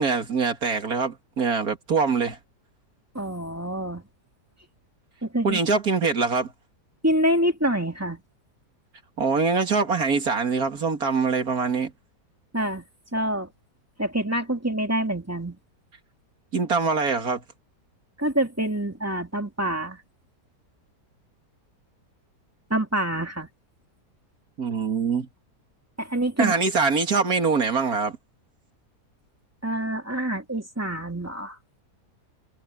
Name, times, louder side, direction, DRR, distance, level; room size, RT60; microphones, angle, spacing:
voice 1, 0.0-2.4 5.4-6.5 9.2-11.9 16.5-17.4 24.6-25.3 26.4-28.2, right 4 dB, 60° right, 2.7 m, -23 dB
voice 2, 3.1-4.0 5.2-5.6 7.0-8.2 12.5-12.8 13.1-13.5 14.0-15.6 18.2-20.0 22.7-23.5 26.0-26.5 29.6-31.6, right 1 dB, 10° right, 2.3 m, -26 dB
omnidirectional pair, 1.8 m